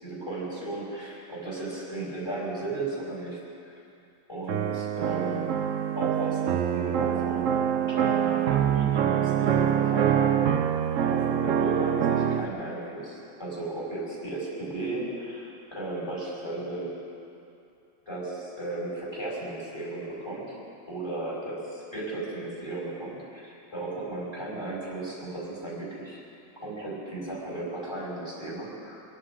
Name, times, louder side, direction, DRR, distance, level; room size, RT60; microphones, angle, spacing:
voice 1, 0.0-3.7 4.3-5.6 6.0-16.9 18.1-20.6 20.9-26.2 26.6-29.0, right 2 dB, 15° left, -6 dB, 5.2 m, -35 dB
sound 1, 4.5-12.5, right 9 dB, 80° right, 0.6 m, -25 dB
25.0 x 11.5 x 5.0 m, 2.6 s
omnidirectional pair, 2.1 m